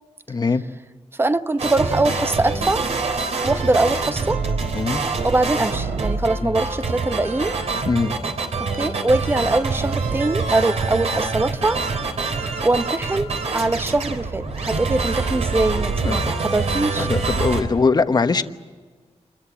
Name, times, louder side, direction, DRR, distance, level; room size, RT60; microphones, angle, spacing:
voice 1, 0.3-0.6 4.7-5.0 6.4-6.6 7.9-8.2 16.0-16.3 17.0-18.4, left 4 dB, 35° left, 9 dB, 1.1 m, -21 dB
voice 2, 1.1-2.9 3.4-4.4 5.2-7.5 8.8-11.8 12.3-17.1, right 2 dB, 20° right, 11 dB, 0.9 m, -22 dB
sound 1, 1.6-17.6, right 4 dB, 65° right, 3.6 m, -25 dB
27.5 x 22.0 x 7.4 m, 1.4 s
wide cardioid pair, 125°, 12 cm